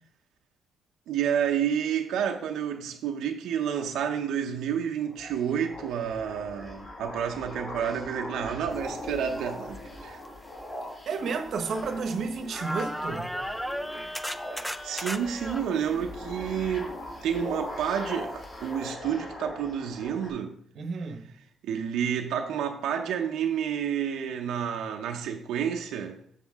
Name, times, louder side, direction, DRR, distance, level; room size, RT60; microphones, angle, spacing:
voice 1, 1.1-10.2 14.8-16.9 17.2-20.5 21.6-26.2, right 8 dB, 85° right, 0.7 m, -30 dB
sound 1, 5.0-20.3, left 1 dB, 35° left, 2.1 m, -40 dB
sound 2, 9.7-9.8 10.5-12.2 12.5-15.6 18.4-18.5 18.9-19.0, equal, ahead, 0.4 m, -36 dB
voice 2, 11.1-13.3 20.7-21.3, right 4 dB, 55° right, 0.9 m, -31 dB
7.4 x 6.7 x 3.5 m
cardioid pair, 145°, 0 cm